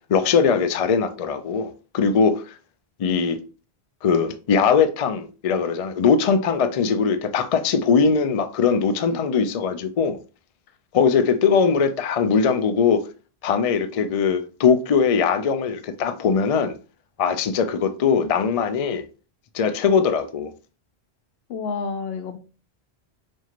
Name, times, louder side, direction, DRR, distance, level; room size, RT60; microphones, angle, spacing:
voice 1, 0.1-2.5 3.0-3.4 4.0-10.2 10.9-13.0 13.4-16.7 17.2-19.0 19.5-20.5, left 6 dB, 55° left, 0.4 m, -20 dB
voice 2, 21.5-22.4, left 5 dB, 70° left, 0.8 m, -29 dB
4.4 x 2.4 x 2.9 m
omnidirectional pair, 1.1 m